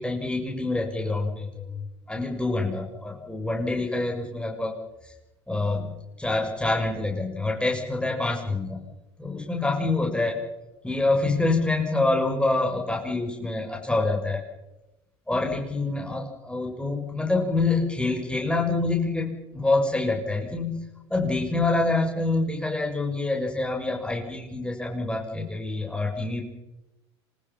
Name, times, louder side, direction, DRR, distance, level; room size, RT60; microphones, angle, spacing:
voice 1, 0.0-5.1 5.5-5.9 6.2-8.8 9.2-10.4 10.8-14.4 15.3-20.8 21.1-26.4, left 2 dB, 5° left, 0 dB, 6.9 m, -26 dB
27.5 x 26.5 x 5.8 m, 1.0 s
hypercardioid pair, 80°, 14 cm